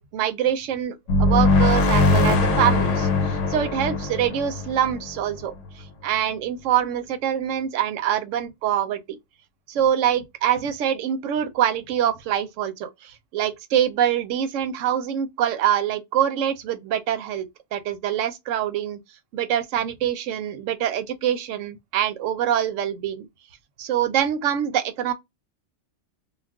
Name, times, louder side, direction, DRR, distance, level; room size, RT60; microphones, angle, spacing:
voice 1, 0.0-5.5 6.0-9.0 9.7-19.0 19.3-23.3 23.8-25.1, right 10 dB, 85° right, 0.9 m, -25 dB
sound 1, 1.1-5.7, left 2 dB, 80° left, 1.0 m, -21 dB
2.3 x 2.2 x 3.4 m
omnidirectional pair, 1.3 m